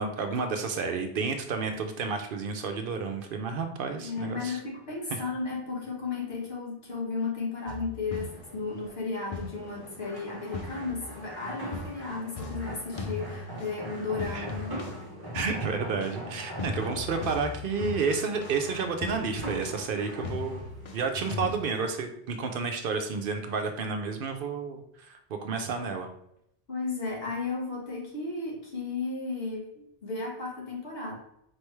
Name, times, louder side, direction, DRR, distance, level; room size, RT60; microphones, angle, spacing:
voice 1, 0.0-4.6 5.1-5.2 14.2-14.5 15.3-26.1, right 5 dB, 65° right, 6 dB, 0.7 m, -31 dB
voice 2, 3.9-14.8 26.7-31.1, left 4 dB, 70° left, -3 dB, 1.6 m, -34 dB
sound 1, 7.7-8.7 9.3-10.0 10.5-11.4 11.7-21.6, left 4 dB, 50° left, 0.4 m, -40 dB
sound 2, 8.2-21.9, right 1 dB, 25° right, 0.9 m, -43 dB
4.4 x 3.3 x 3.1 m, 0.75 s
omnidirectional pair, 1.0 m